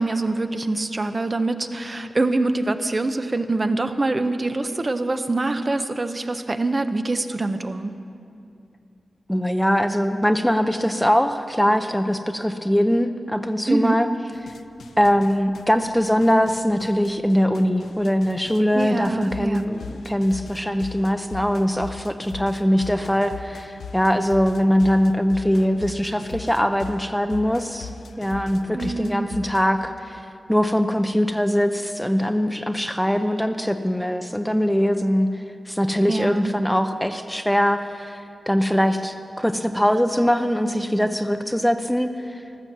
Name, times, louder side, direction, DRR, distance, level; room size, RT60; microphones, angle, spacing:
voice 1, 0.0-7.9 13.7-14.0 18.7-19.6 28.7-29.3 36.0-36.5, right 2 dB, 35° right, 8 dB, 0.8 m, -24 dB
voice 2, 9.3-14.1 15.0-27.9 28.2-30.2 30.5-42.4, equal, 5° left, 8 dB, 0.6 m, -22 dB
sound 1, 14.3-29.7, left 5 dB, 90° left, 0.5 m, -40 dB
14.5 x 13.0 x 7.3 m, 2.6 s
wide cardioid pair, 80°, 0 cm